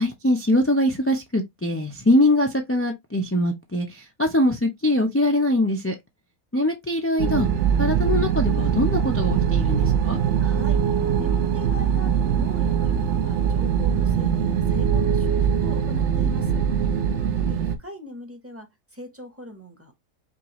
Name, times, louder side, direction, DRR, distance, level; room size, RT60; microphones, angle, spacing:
voice 1, 0.0-6.0 6.5-7.5 7.8-10.2 17.1-17.3, left 1 dB, 20° left, 0.3 m, -22 dB
sound 1, 7.2-17.8, right 8 dB, 60° right, 0.9 m, -22 dB
voice 2, 10.4-10.8 11.1-16.6 17.2-19.9, left 1 dB, 10° right, 0.8 m, -41 dB
5.3 x 2.6 x 3.0 m
omnidirectional pair, 1.5 m